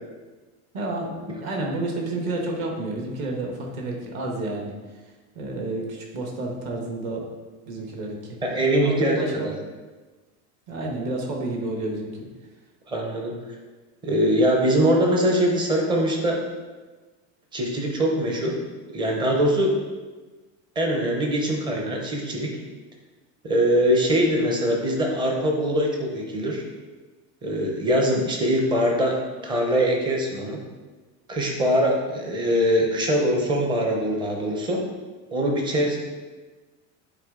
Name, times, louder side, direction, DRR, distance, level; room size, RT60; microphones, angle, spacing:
voice 1, 0.7-4.7 5.3-7.2 7.6-8.4 8.8-9.5 10.7-12.3, right 2 dB, 40° right, 0 dB, 1.2 m, -30 dB
voice 2, 8.4-9.5 12.9-13.3 14.0-16.4 17.5-18.6 18.9-19.8 20.8-22.5 23.4-26.6 27.4-30.6 31.3-34.8 35.3-36.0, equal, 10° right, 0 dB, 0.6 m, -22 dB
9.7 x 4.1 x 3.6 m, 1.3 s
cardioid pair, 175°, 42 cm